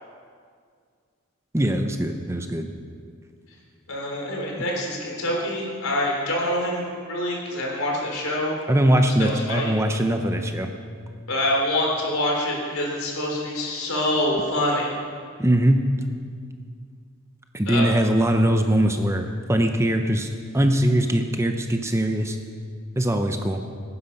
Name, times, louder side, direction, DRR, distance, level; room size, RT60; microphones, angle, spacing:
voice 1, 1.5-2.7 8.7-10.7 15.4-15.8 17.5-20.3 20.5-22.4 23.0-23.6, right 1 dB, 15° right, 5 dB, 0.7 m, -21 dB
voice 2, 3.9-8.5 9.2-9.7 11.3-14.9 17.7-17.9, left 1 dB, 80° left, -2 dB, 3.6 m, -26 dB
18.0 x 9.9 x 5.4 m, 2.1 s
head